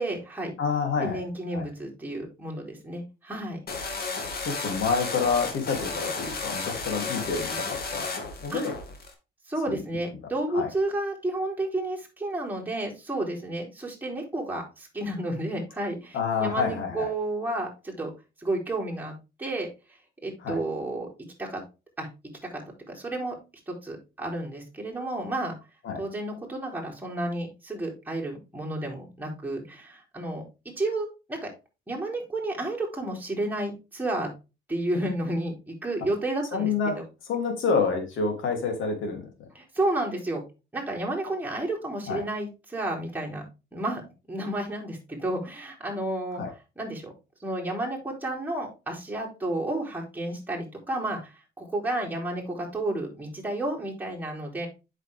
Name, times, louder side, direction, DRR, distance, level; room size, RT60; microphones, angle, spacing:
voice 1, 0.0-0.5 1.0-3.6 8.5-8.6 9.5-18.1 18.4-19.1 19.4-19.7 20.2-21.1 21.4-21.6 22.0-22.1 22.5-22.6 22.9-23.4 23.7-25.5 26.0-30.4 30.8-31.5 31.9-34.3 34.7-36.7 39.5-40.4 40.7-43.4 43.7-44.0 44.3-46.4 46.8-47.1 47.4-51.3 51.6-54.7, right 1 dB, 10° right, -2 dB, 4.0 m, -31 dB
voice 2, 0.6-1.2 1.5-1.7 4.4-7.5 7.9-8.1 8.4-8.7 9.7-9.8 10.5-10.7 16.1-17.1 20.4-20.6 25.8-26.0 36.5-37.0 37.3-39.3 42.1-42.2 46.4-46.5, left 5 dB, 75° left, 3 dB, 3.3 m, -27 dB
sound 1, 3.7-9.1, left 3 dB, 50° left, 2.7 m, -33 dB
8.1 x 6.6 x 3.6 m, 0.28 s
cardioid pair, 90°, 20 cm